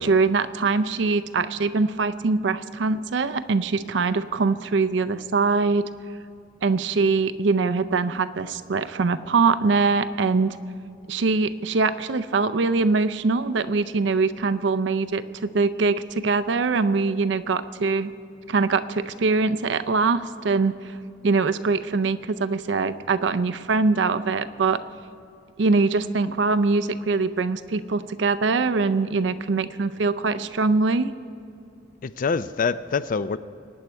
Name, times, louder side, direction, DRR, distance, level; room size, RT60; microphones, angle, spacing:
voice 1, 0.0-5.9 6.6-10.6 11.1-18.1 18.5-20.9 21.2-24.8 25.6-31.1, right 4 dB, 65° right, 12 dB, 0.5 m, -23 dB
voice 2, 32.0-33.4, left 5 dB, 45° left, 14 dB, 0.4 m, -25 dB
23.0 x 9.5 x 4.5 m, 2.5 s
head